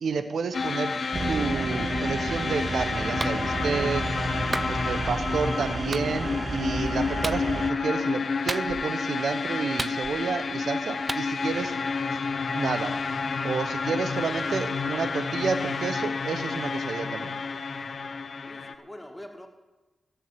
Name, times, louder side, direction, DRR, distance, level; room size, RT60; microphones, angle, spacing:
voice 1, 0.0-0.9 1.3-4.1 4.7-11.7 12.1-12.2 12.5-12.9 13.4-17.3, right 5 dB, 75° right, 10 dB, 1.0 m, -30 dB
sound 1, 0.5-18.7, left 4 dB, 65° left, 1.0 m, -30 dB
sound 2, 1.1-7.7, right 3 dB, 50° right, 0.7 m, -32 dB
Clapping, 3.2-3.4 4.5-4.7 5.9-6.1 7.2-7.4 8.5-8.9 9.8-10.3 11.1-11.3, right 2 dB, 30° right, 0.4 m, -32 dB
voice 2, 18.4-19.5, left 1 dB, 10° left, 3 dB, 2.3 m, -44 dB
14.0 x 8.4 x 7.5 m, 1.2 s
cardioid pair, 50°, 0 cm